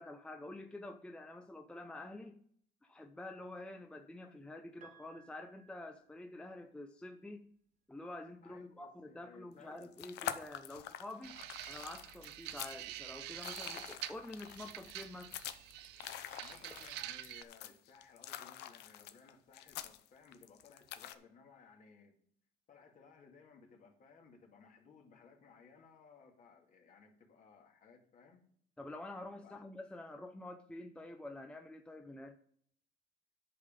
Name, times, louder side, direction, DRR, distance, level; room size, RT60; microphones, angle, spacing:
voice 1, 0.0-2.4 2.8-7.4 7.9-11.4 11.7-15.4 28.8-32.4, left 2 dB, 5° left, 5 dB, 0.6 m, -48 dB
Piano, 4.8-6.8 8.1-8.2, right 8 dB, 50° right, 0.9 m, -63 dB
voice 2, 8.4-9.9 16.4-22.2 22.7-28.5 29.4-29.7, left 5 dB, 50° left, 1 dB, 2.1 m, -60 dB
sound 1, 9.6-21.2, left 12 dB, 85° left, 0.7 m, -46 dB
sound 2, 11.2-17.4, right 14 dB, 90° right, 0.5 m, -47 dB
10.0 x 5.5 x 5.2 m, 0.63 s
cardioid pair, 110°, 17 cm